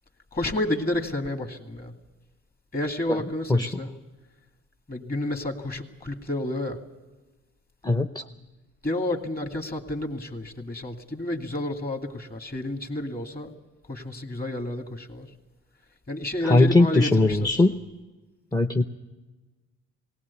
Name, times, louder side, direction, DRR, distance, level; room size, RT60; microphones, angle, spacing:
voice 1, 0.3-1.9 2.7-3.9 4.9-6.8 8.8-13.5 13.8-15.3 16.1-17.7, left 1 dB, 30° left, 5 dB, 2.4 m, -30 dB
voice 2, 3.5-3.8 7.8-8.2 16.5-17.7 18.5-18.8, left 2 dB, 10° left, 9 dB, 0.7 m, -20 dB
18.5 x 18.0 x 8.4 m, 1.2 s
cardioid pair, 90°, 30 cm